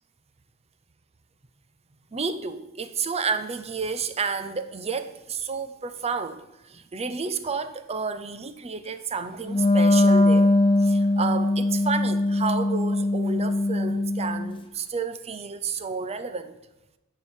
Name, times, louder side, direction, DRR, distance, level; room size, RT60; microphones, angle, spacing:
voice 1, 2.1-10.5 10.8-16.6, right 5 dB, 30° right, 11 dB, 0.6 m, -31 dB
Wind instrument woodwind instrument, 9.4-14.5, left 2 dB, 25° left, 0.7 m, -21 dB
8.6 x 4.7 x 7.3 m, 0.98 s
head